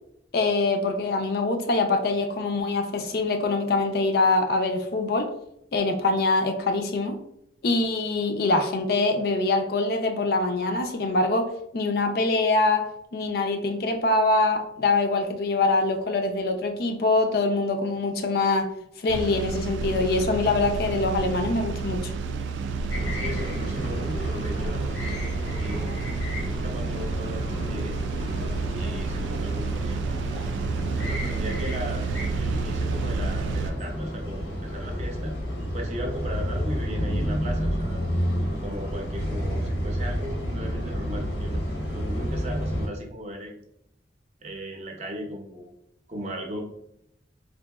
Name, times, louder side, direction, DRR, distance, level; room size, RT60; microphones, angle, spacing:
voice 1, 0.3-5.3 5.7-7.2 7.6-12.9 13.1-18.7 19.0-22.1, left 3 dB, 55° left, 5 dB, 0.4 m, -24 dB
sound 1, 19.1-33.7, right 5 dB, 90° right, 0.3 m, -31 dB
sound 2, 22.9-42.9, equal, 90° left, 0.9 m, -30 dB
voice 2, 23.1-25.2 25.5-25.8 26.6-28.0 28.7-30.1 31.0-35.3 35.7-38.0 38.6-43.6 44.4-45.7 46.1-46.6, equal, 35° right, 1 dB, 0.6 m, -37 dB
3.8 x 2.7 x 2.3 m, 0.76 s
head